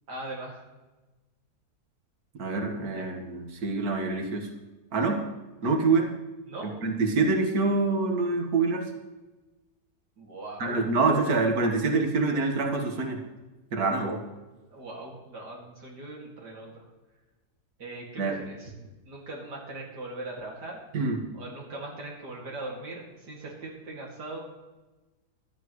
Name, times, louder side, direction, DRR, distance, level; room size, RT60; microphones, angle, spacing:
voice 1, 0.1-0.6 2.8-3.1 6.4-6.8 10.2-10.9 14.7-16.9 17.8-20.8 21.3-24.4, right 2 dB, 90° right, -3 dB, 3.0 m, -40 dB
voice 2, 2.4-4.5 4.9-5.2 5.6-6.1 6.6-8.8 10.6-13.2 13.7-14.2 18.2-18.3 20.9-21.2, right 3 dB, 65° right, 2 dB, 2.1 m, -26 dB
16.0 x 12.0 x 3.2 m, 1.2 s
omnidirectional pair, 1.7 m